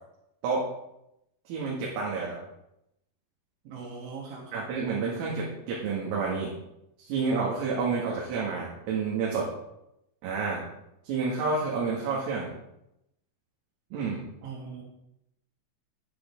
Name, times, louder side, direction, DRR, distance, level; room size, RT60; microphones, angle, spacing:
voice 1, 1.5-2.4 4.5-6.5 7.0-9.5 10.2-10.6 11.0-12.5 13.9-14.2, right 4 dB, 90° right, -4 dB, 4.8 m, -29 dB
voice 2, 3.6-4.7 14.4-14.8, right 5 dB, 65° right, -5 dB, 5.1 m, -40 dB
12.5 x 11.0 x 3.7 m, 0.84 s
omnidirectional pair, 5.8 m